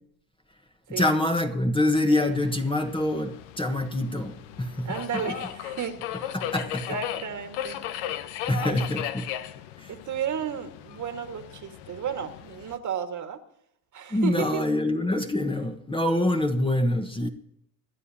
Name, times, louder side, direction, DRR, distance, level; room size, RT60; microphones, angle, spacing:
voice 1, 0.9-4.9 6.3-7.0 8.5-9.3 9.8-9.9 14.1-17.3, left 1 dB, 10° left, 1.2 m, -25 dB
Subway metro underground, 2.2-12.8, left 11 dB, 75° left, 1.0 m, -37 dB
voice 2, 4.8-6.3 6.9-7.8 8.5-8.8 9.9-13.4 13.9-14.7, right 8 dB, 45° right, 1.8 m, -33 dB
25.5 x 11.0 x 2.8 m
supercardioid pair, 80°, 43 cm